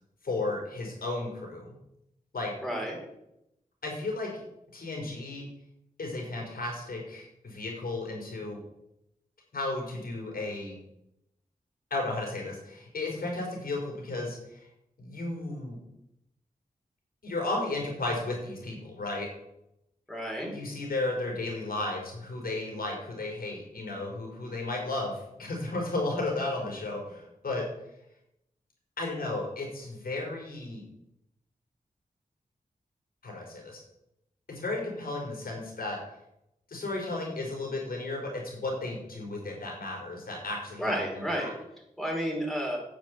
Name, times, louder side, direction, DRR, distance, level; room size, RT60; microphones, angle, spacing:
voice 1, 0.2-1.7 2.3-2.5 3.8-4.3 4.7-5.5 6.0-8.6 9.5-10.8 11.9-14.6 15.0-15.8 17.2-19.3 20.5-27.7 29.0-30.8 33.2-33.8 34.5-36.0 36.7-41.5, left 2 dB, 80° left, -1 dB, 4.8 m, -34 dB
voice 2, 2.6-3.0 20.1-20.5 40.8-41.5 42.0-42.8, equal, ahead, -2 dB, 4.9 m, -31 dB
9.8 x 6.9 x 8.3 m, 0.83 s
wide cardioid pair, 70°, 15 cm